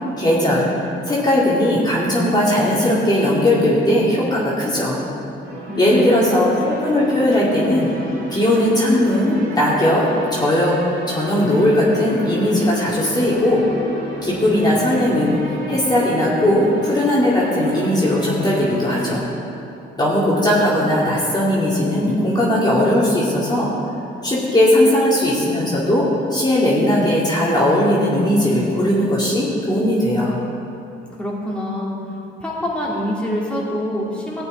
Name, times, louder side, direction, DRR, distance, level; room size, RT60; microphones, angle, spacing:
voice 1, 0.2-0.7 1.1-5.0 5.8-7.9 8.3-10.0 10.3-10.7 11.1-13.6 14.2-15.3 15.7-19.3 20.0-23.7 24.2-26.0 26.3-30.3, left 1 dB, 20° left, -7 dB, 2.4 m, -18 dB
sound 1, 5.4-19.2, equal, 75° right, 2.5 m, -32 dB
voice 2, 5.7-6.4 31.2-31.9 32.4-34.4, left 1 dB, 5° left, -6 dB, 2.5 m, -25 dB
15.0 x 8.6 x 3.9 m, 2.8 s
cardioid pair, 90°, 20 cm